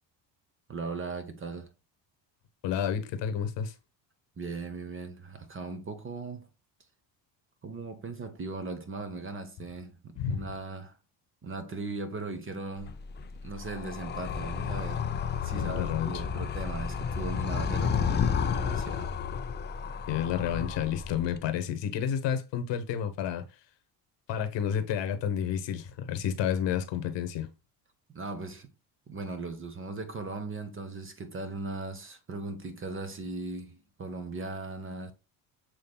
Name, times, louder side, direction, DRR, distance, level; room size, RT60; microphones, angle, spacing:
voice 1, 0.7-1.7 4.4-6.5 7.6-11.0 11.4-13.0 13.4-15.1 15.4-19.2 28.1-28.7 29.1-35.1, right 3 dB, 25° right, 0.8 m, -38 dB
voice 2, 2.6-3.7 10.2-10.4 15.6-16.1 20.1-23.4 24.3-27.5, left 8 dB, 60° left, 1.0 m, -30 dB
Animal, 12.8-21.4, left 6 dB, 25° left, 0.3 m, -32 dB
7.1 x 3.2 x 2.2 m
supercardioid pair, 90°, 48 cm